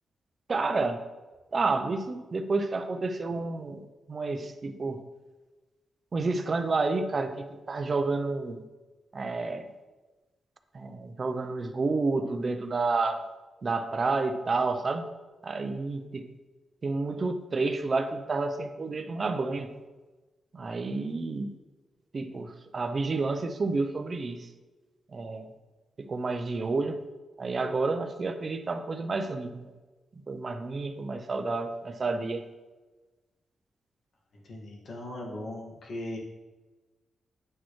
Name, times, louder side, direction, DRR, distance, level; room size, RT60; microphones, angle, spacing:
voice 1, 0.5-1.0 1.5-3.8 4.1-5.0 6.1-8.6 9.1-9.7 10.7-13.2 13.6-15.1 15.4-16.3 16.8-19.7 20.5-21.5 22.1-24.5 25.1-25.5 26.0-27.0 27.4-29.7 30.3-32.4, right 3 dB, 40° right, 8 dB, 0.7 m, -30 dB
voice 2, 34.3-36.2, left 1 dB, 60° left, -2 dB, 1.8 m, -38 dB
9.9 x 6.1 x 3.2 m, 1.2 s
cardioid pair, 110°, 0 cm